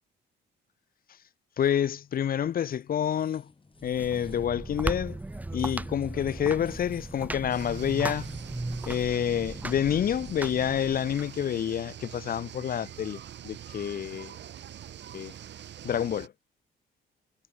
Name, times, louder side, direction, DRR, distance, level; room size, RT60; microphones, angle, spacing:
voice 1, 1.6-3.5 3.8-5.2 5.5-8.3 8.9-14.3 15.1-15.3 15.8-16.3, left 9 dB, 50° left, 0.6 m, -28 dB
sound 1, 1.6-13.2, left 4 dB, 25° left, 4.9 m, -60 dB
sound 2, 3.8-11.2, right 2 dB, 10° right, 0.4 m, -37 dB
sound 3, 7.5-16.3, right 10 dB, 60° right, 1.6 m, -44 dB
cardioid pair, 90°, 20 cm